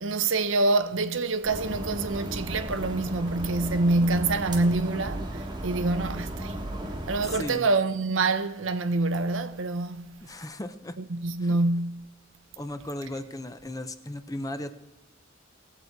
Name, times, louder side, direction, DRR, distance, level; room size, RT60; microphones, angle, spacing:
voice 1, 0.0-6.7 7.1-10.1 11.1-12.1, right 3 dB, 70° right, 0.8 m, -26 dB
sound 1, 1.4-7.4, right 1 dB, 20° right, 1.2 m, -35 dB
voice 2, 7.3-7.7 10.2-11.0 11.4-11.6 12.6-14.7, left 1 dB, 20° left, 0.6 m, -36 dB
19.0 x 8.0 x 4.6 m
head